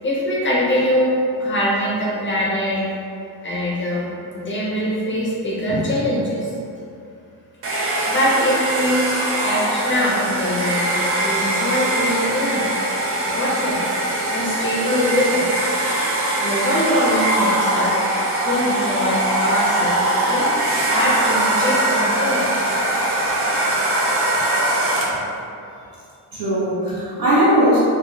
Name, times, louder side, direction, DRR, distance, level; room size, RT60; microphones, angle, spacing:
voice 1, 0.0-2.8 3.4-4.1 4.3-6.5 8.1-9.1 9.4-12.6 13.3-13.8 14.3-15.5 16.1-20.5 20.9-22.4, equal, 30° left, -6 dB, 0.5 m, -22 dB
Domestic sounds home sounds, 7.6-25.3, right 1 dB, 35° right, 0.5 m, -21 dB
voice 2, 23.7-24.4 26.3-27.8, equal, 60° right, -10 dB, 1.3 m, -20 dB
3.7 x 2.6 x 2.6 m, 2.5 s
wide cardioid pair, 165°, 38 cm